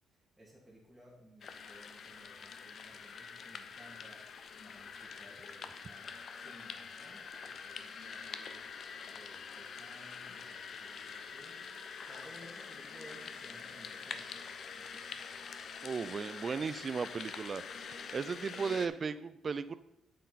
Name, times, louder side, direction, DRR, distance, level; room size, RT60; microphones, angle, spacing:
voice 1, 0.1-15.5, equal, 5° right, -7 dB, 2.2 m, -58 dB
sound 1, 1.4-18.9, left 6 dB, 55° left, 0.7 m, -46 dB
voice 2, 15.8-17.6 18.1-19.8, right 5 dB, 40° right, 14 dB, 0.4 m, -36 dB
8.1 x 6.5 x 4.1 m, 0.87 s
cardioid pair, 90°, 0 cm